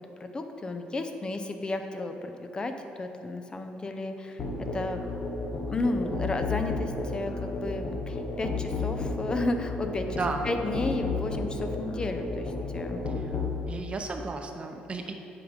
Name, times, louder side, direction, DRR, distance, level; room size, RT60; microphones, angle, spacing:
voice 1, 0.2-2.7 3.0-4.4 4.7-5.0 5.7-10.2 10.4-13.0, left 2 dB, 25° left, 6 dB, 0.6 m, -33 dB
Musical instrument, 4.4-13.6, left 3 dB, 50° left, 1.0 m, -32 dB
voice 2, 10.1-10.5 13.2-13.3 13.7-15.1, right 3 dB, 35° right, 5 dB, 0.8 m, -33 dB
8.6 x 5.0 x 4.8 m, 2.8 s
cardioid pair, 100°, 3 cm